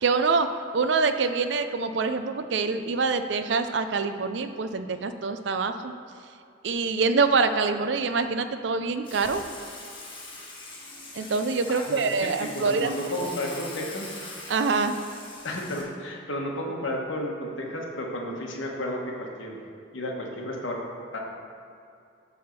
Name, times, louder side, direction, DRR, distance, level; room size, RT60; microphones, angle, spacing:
voice 1, 0.0-0.5 0.7-5.9 6.6-9.5 11.1-12.9 14.5-15.0, right 4 dB, 60° right, 9 dB, 0.4 m, -25 dB
Water / Water tap faucet / Sink (filling or washing), 9.0-15.8, left 2 dB, 25° left, 1.2 m, -42 dB
voice 2, 11.7-12.1 12.4-14.2 15.4-19.6 19.9-20.8 21.1-21.2, left 1 dB, 75° left, 0 dB, 1.3 m, -32 dB
8.9 x 3.5 x 6.6 m, 2.5 s
head